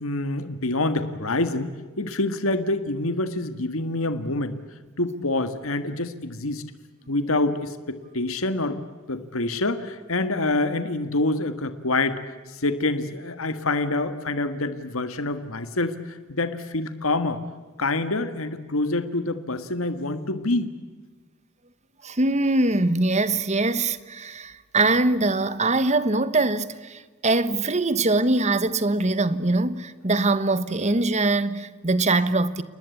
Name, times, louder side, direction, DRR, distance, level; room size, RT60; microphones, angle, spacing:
voice 1, 0.0-4.6 5.0-6.6 7.1-8.8 9.1-12.2 12.5-17.4 17.8-20.7, left 2 dB, 70° left, 1.8 m, -26 dB
voice 2, 22.0-32.6, right 2 dB, 30° right, 1.2 m, -22 dB
29.5 x 20.0 x 8.5 m
head